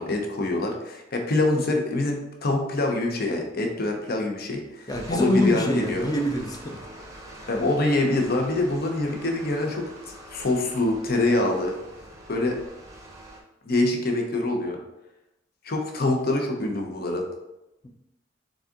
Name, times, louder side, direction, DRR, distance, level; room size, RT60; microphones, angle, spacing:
voice 1, 0.0-6.1 7.5-9.8 10.3-11.7 12.3-12.6 13.6-14.8 15.6-17.2, left 2 dB, 50° left, 3 dB, 0.7 m, -25 dB
voice 2, 4.9-6.8, equal, 20° left, 3 dB, 0.6 m, -25 dB
sound 1, 4.9-13.4, right 1 dB, 15° right, 0.7 m, -44 dB
4.1 x 3.6 x 3.6 m, 0.93 s
head